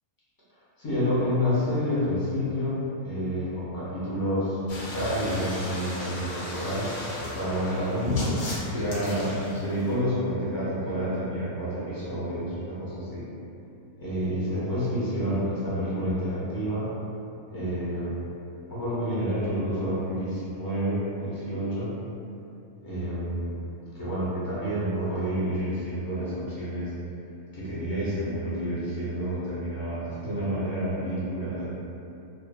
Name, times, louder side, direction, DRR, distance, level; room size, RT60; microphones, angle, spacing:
voice 1, 0.8-6.9 7.3-8.3 8.7-13.2 13.9-16.9 17.5-18.1 18.7-21.9 22.8-23.6 23.9-26.9 27.5-31.7, equal, 35° left, -11 dB, 0.3 m, -29 dB
sound 1, 4.7-10.0, left 2 dB, 60° left, 0.9 m, -34 dB
2.7 x 2.4 x 2.3 m, 2.7 s
omnidirectional pair, 1.6 m